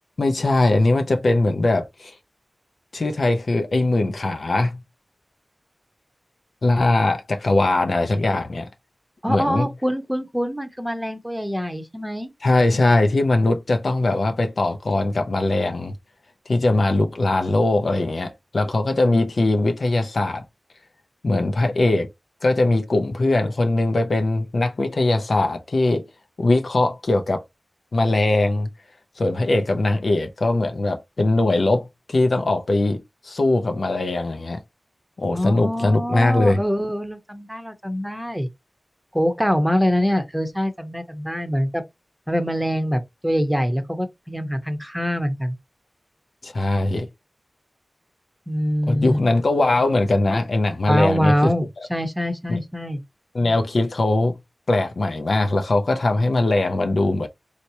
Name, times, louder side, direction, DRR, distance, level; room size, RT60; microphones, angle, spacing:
voice 1, 0.2-2.1 2.9-4.8 6.6-8.7 9.3-9.7 12.4-15.9 16.5-20.4 21.2-22.1 22.4-26.0 26.4-27.4 27.9-28.7 29.2-34.6 35.2-36.6 46.4-47.1 48.9-51.5 52.5-52.6 53.3-54.3 54.7-57.3, left 2 dB, 75° left, 0.6 m, -21 dB
voice 2, 9.2-12.3 35.3-38.5 39.1-41.8 42.3-45.5 48.5-49.2 50.9-53.0, equal, 5° right, 0.8 m, -24 dB
3.3 x 2.8 x 2.7 m
cardioid pair, 40°, 0 cm